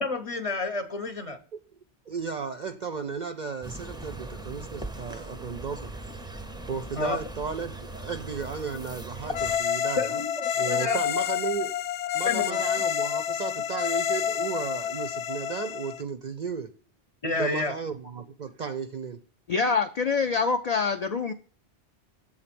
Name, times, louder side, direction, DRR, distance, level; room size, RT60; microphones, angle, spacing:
voice 1, 0.0-1.4 6.9-7.2 10.0-11.0 12.3-12.6 17.2-17.8, left 3 dB, 35° left, 0.8 m, -29 dB
voice 2, 2.1-5.9 6.7-10.2 10.6-11.8 12.1-16.7 17.4-19.2, right 5 dB, 55° right, 0.5 m, -34 dB
sound 1, 3.6-9.6, right 2 dB, 5° right, 0.4 m, -40 dB
sound 2, 9.3-16.0, left 9 dB, 90° left, 0.9 m, -28 dB
voice 3, 19.5-21.3, left 5 dB, 55° left, 0.4 m, -25 dB
7.9 x 3.8 x 5.9 m
omnidirectional pair, 1.1 m